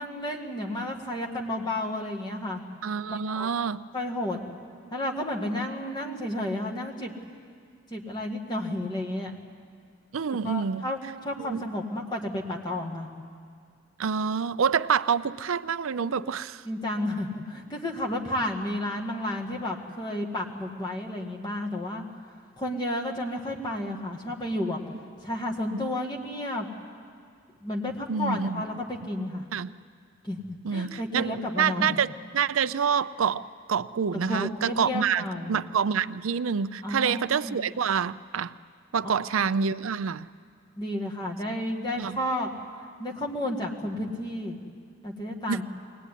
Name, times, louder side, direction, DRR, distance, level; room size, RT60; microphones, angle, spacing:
voice 1, 0.0-2.6 3.1-3.5 3.9-4.4 4.9-7.1 7.9-9.4 10.3-13.1 16.7-22.0 22.6-24.8 25.2-26.7 27.6-29.4 30.2-30.4 30.7-32.0 34.1-35.6 36.8-37.6 39.0-39.1 40.8-44.6 45.0-45.6, left 1 dB, 20° left, 0 dB, 2.0 m, -32 dB
voice 2, 2.8-3.8 10.1-10.8 11.4-11.6 14.0-16.6 25.7-25.9 28.1-28.7 29.5-29.7 30.6-38.5 38.9-40.3 41.9-42.2 45.5-45.6, right 6 dB, 85° right, 14 dB, 0.5 m, -27 dB
22.5 x 18.5 x 10.0 m, 2.2 s
head